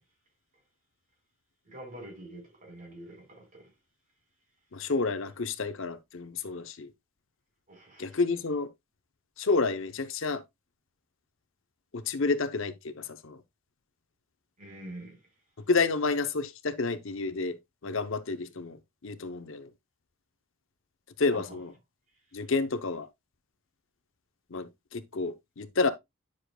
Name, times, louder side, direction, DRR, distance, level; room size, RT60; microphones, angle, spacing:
voice 1, 1.7-3.7 7.7-8.4 14.6-15.2 21.3-21.7, right 1 dB, 40° right, 4.4 m, -46 dB
voice 2, 4.7-6.9 8.0-8.7 9.4-10.4 11.9-13.4 15.7-19.7 21.2-21.7 22.3-23.1 24.5-25.9, left 4 dB, 65° left, 0.7 m, -30 dB
10.0 x 6.5 x 2.3 m
head